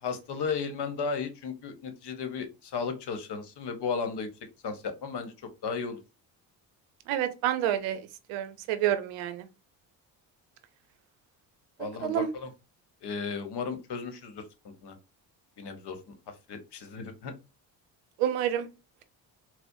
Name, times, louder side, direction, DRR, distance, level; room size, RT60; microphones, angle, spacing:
voice 1, 0.0-4.3 4.6-5.3 5.6-6.0 11.8-12.5 13.0-15.0 15.6-16.1 16.5-17.3, left 5 dB, 60° left, 1.0 m, -34 dB
voice 2, 7.1-9.5 12.0-12.3 18.2-18.7, right 11 dB, 90° right, 0.6 m, -29 dB
4.3 x 2.0 x 2.6 m
supercardioid pair, 60°, 46 cm